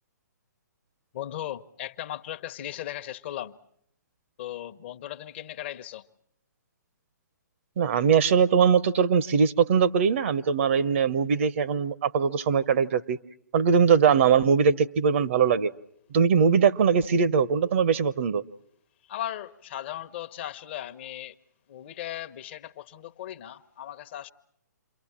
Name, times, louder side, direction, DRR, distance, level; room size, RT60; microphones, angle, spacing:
voice 1, 1.1-3.6 4.4-6.0 19.1-21.3 21.7-24.3, left 12 dB, 35° left, 1.0 m, -37 dB
voice 2, 7.8-13.2 13.5-15.7 16.1-18.4, right 6 dB, 45° right, 0.9 m, -21 dB
28.0 x 23.5 x 7.3 m
figure-of-eight pair, 125°, 10 cm